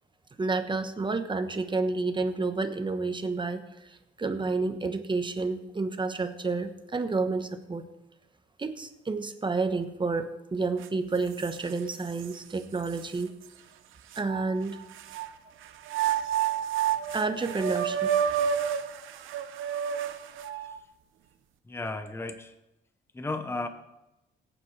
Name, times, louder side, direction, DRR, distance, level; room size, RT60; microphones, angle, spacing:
voice 1, 0.4-3.9 4.2-7.8 8.6-13.3 14.2-14.8 17.1-18.1, right 3 dB, 25° right, 8 dB, 1.1 m, -30 dB
sound 1, 10.8-10.9 11.4-12.3 13.0-13.1 14.1-15.3 15.9-20.8, right 9 dB, 85° right, 0.8 m, -29 dB
voice 2, 21.7-22.5 23.1-23.7, left 2 dB, 10° left, 8 dB, 0.8 m, -34 dB
17.5 x 8.9 x 3.3 m, 0.95 s
cardioid pair, 90°, 20 cm